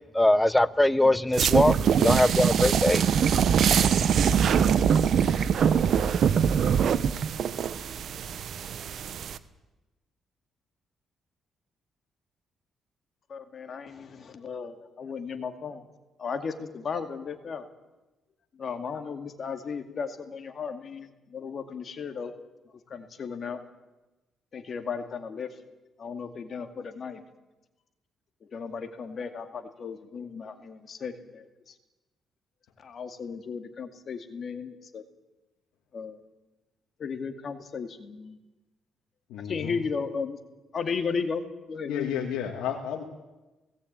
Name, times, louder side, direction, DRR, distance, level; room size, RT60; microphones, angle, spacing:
voice 1, 0.1-3.0, left 1 dB, 10° left, 16 dB, 0.8 m, -22 dB
sound 1, 1.3-9.4, right 7 dB, 65° right, 1.0 m, -23 dB
voice 2, 13.3-15.8 16.2-17.6 18.6-22.3 22.9-23.6 24.5-25.5 26.0-27.2 28.5-31.7 32.8-35.0 35.9-36.2 37.0-38.4 39.5-40.4 40.7-41.4 41.7-42.2, left 5 dB, 50° left, 7 dB, 2.2 m, -35 dB
voice 3, 39.3-39.8 41.9-43.0, left 9 dB, 90° left, 1 dB, 2.1 m, -32 dB
18.5 x 17.5 x 8.8 m, 1.1 s
cardioid pair, 90°, 0 cm